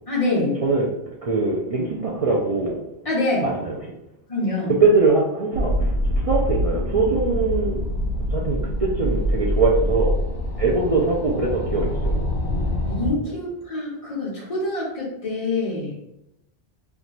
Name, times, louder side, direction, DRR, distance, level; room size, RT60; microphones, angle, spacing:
voice 1, 0.1-0.6 3.0-3.5 4.3-4.7 12.9-16.0, left 2 dB, 35° left, -5 dB, 1.1 m, -25 dB
voice 2, 1.2-2.8 3.4-3.8 4.7-5.9 6.2-7.8 8.3-10.2 10.6-12.2, right 3 dB, 55° right, -2 dB, 0.4 m, -22 dB
sound 1, 5.5-13.1, equal, 75° left, 1.2 m, -25 dB
3.0 x 2.2 x 4.0 m, 0.86 s
omnidirectional pair, 1.1 m